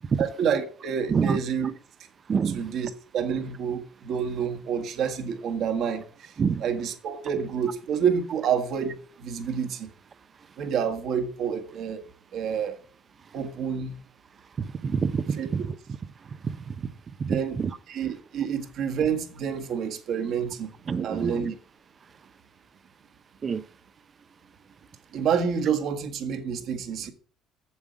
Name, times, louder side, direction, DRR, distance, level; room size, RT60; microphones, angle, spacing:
voice 1, 0.2-1.7 2.5-6.3 6.6-9.9 10.6-12.0 12.3-12.8 13.3-14.0 15.4-15.5 17.3-17.6 17.9-20.7 21.0-21.5 25.1-27.1, right 7 dB, 60° right, 1.6 m, -28 dB
voice 2, 1.1-1.4 2.3-2.6 6.4-6.6 14.6-15.6 16.4-16.8 17.2-17.7 20.9-21.5 23.4-23.6, right 6 dB, 40° right, 0.7 m, -26 dB
7.3 x 7.3 x 5.2 m
supercardioid pair, 85°, 0 cm